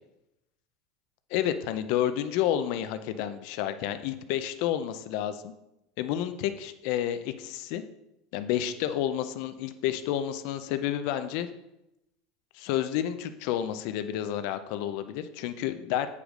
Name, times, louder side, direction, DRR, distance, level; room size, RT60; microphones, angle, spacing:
voice 1, 1.3-5.5 6.0-7.8 8.3-11.5 12.5-16.1, left 11 dB, 65° left, 10 dB, 0.7 m, -30 dB
8.3 x 5.0 x 5.2 m, 0.88 s
supercardioid pair, 125°, 0 cm